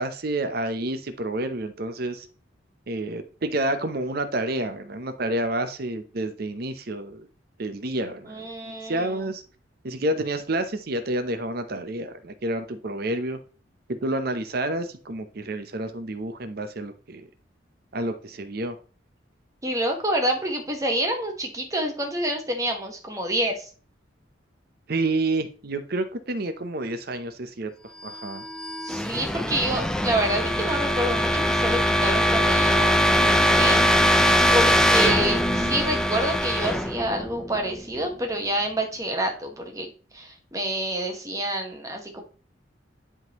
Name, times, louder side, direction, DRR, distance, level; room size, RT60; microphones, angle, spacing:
voice 1, 0.0-2.3 2.9-7.3 7.6-8.4 8.9-9.4 9.8-13.4 13.9-17.2 17.9-18.8 24.9-27.7 28.0-28.4 35.6-35.7, right 2 dB, 50° right, 9 dB, 0.7 m, -29 dB
voice 2, 8.2-9.3 19.6-23.7 28.8-34.2 34.5-39.9 40.1-42.2, right 1 dB, 15° right, 3 dB, 1.2 m, -28 dB
sound 1, 28.2-38.0, equal, 5° left, 0.4 m, -22 dB
10.5 x 3.7 x 3.0 m, 0.39 s
head